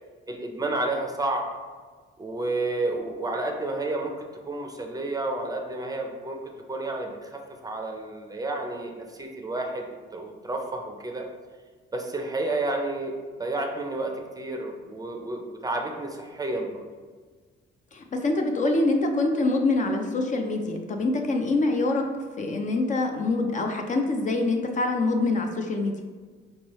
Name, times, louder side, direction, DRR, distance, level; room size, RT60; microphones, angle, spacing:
voice 1, 0.3-1.5 2.2-9.9 10.1-11.3 11.9-16.8, right 2 dB, 20° right, 2 dB, 0.5 m, -31 dB
voice 2, 17.9-22.0 22.4-26.0, left 2 dB, 40° left, 3 dB, 0.5 m, -25 dB
4.4 x 3.1 x 3.0 m, 1.5 s
cardioid pair, 90°, 20 cm